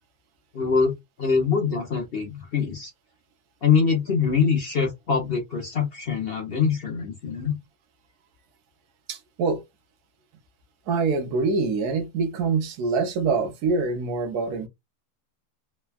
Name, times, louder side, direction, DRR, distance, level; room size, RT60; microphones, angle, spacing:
voice 1, 0.5-2.9 3.6-7.5, left 6 dB, 50° left, 0.7 m, -24 dB
voice 2, 9.1-9.6 10.9-14.7, right 4 dB, 75° right, 1.2 m, -25 dB
3.3 x 2.2 x 2.2 m
omnidirectional pair, 1.7 m